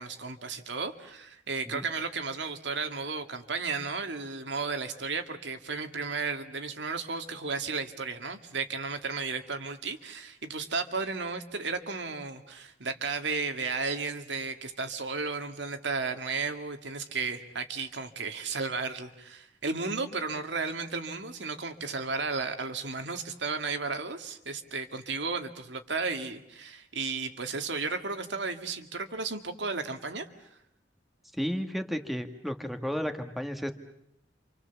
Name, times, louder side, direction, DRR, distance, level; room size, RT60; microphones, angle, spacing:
voice 1, 0.0-30.3, right 4 dB, 75° right, 7 dB, 2.2 m, -34 dB
voice 2, 31.4-33.7, equal, ahead, 7 dB, 1.8 m, -33 dB
29.5 x 27.0 x 7.2 m, 0.78 s
head